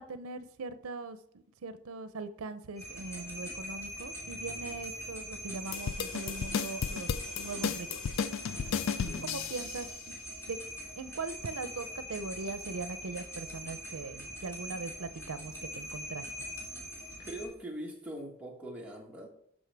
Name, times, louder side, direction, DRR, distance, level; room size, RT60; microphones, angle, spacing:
voice 1, 0.0-8.3 9.0-10.1 10.5-10.6 10.9-16.5, right 4 dB, 90° right, 12 dB, 0.6 m, -41 dB
sound 1, 2.8-17.4, equal, 10° left, 3.1 m, -42 dB
sound 2, 5.7-9.9, left 7 dB, 65° left, 0.3 m, -34 dB
voice 2, 17.2-19.3, right 1 dB, 5° right, -1 dB, 1.3 m, -42 dB
12.5 x 5.4 x 3.4 m, 0.69 s
head